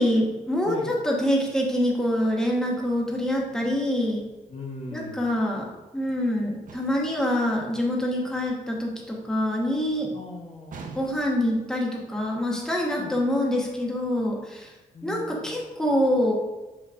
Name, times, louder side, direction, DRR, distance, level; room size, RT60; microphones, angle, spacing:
voice 1, 0.0-4.2 4.9-5.7 5.9-10.1 10.9-14.7 15.0-16.3, left 1 dB, 5° left, -2 dB, 1.1 m, -25 dB
voice 2, 4.5-5.2 10.1-10.8 13.0-13.1 14.9-15.6, left 3 dB, 45° left, 0 dB, 0.9 m, -38 dB
sound 1, 6.7-7.2 10.7-11.5, right 4 dB, 65° right, 0.8 m, -42 dB
6.4 x 5.8 x 2.5 m, 1.1 s
wide cardioid pair, 120°, 15 cm